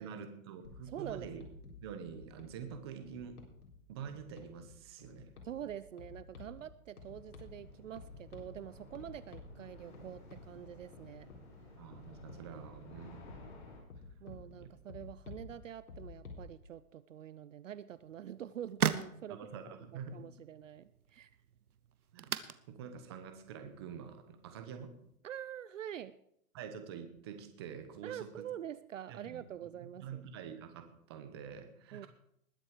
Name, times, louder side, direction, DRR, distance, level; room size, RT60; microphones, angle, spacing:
voice 1, 0.0-1.4 1.8-3.4 3.9-5.3 11.8-13.4 14.6-14.7 19.3-20.3 22.1-22.3 22.7-25.0 26.5-28.5 29.1-29.4 29.8-32.1, right 7 dB, 20° right, 8 dB, 0.9 m, -47 dB
sound 1, 0.6-16.5, left 3 dB, 80° left, 4.0 m, -53 dB
voice 2, 0.9-1.3 5.4-11.3 14.2-19.4 19.9-21.3 25.2-26.2 28.0-30.2 31.9-32.1, right 10 dB, 60° right, 16 dB, 0.6 m, -46 dB
sound 2, 7.0-13.8, left 2 dB, 30° left, 4.5 m, -55 dB
sound 3, 17.9-25.2, right 8 dB, 85° right, 1.2 m, -41 dB
20.0 x 7.7 x 5.0 m, 0.73 s
hypercardioid pair, 170°, 43 cm